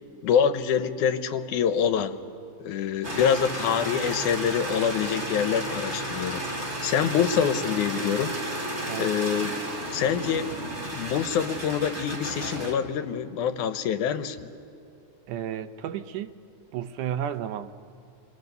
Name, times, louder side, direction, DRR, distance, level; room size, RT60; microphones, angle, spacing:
voice 1, 0.2-2.2 2.6-6.4 6.8-8.4 9.0-9.6 9.9-10.5 10.9-14.4, left 8 dB, 80° left, 2.2 m, -25 dB
sound 1, 3.0-12.7, right 1 dB, 25° right, 3.5 m, -33 dB
voice 2, 15.3-16.3 16.7-17.9, right 10 dB, 80° right, 2.3 m, -33 dB
30.0 x 23.5 x 6.8 m
omnidirectional pair, 3.6 m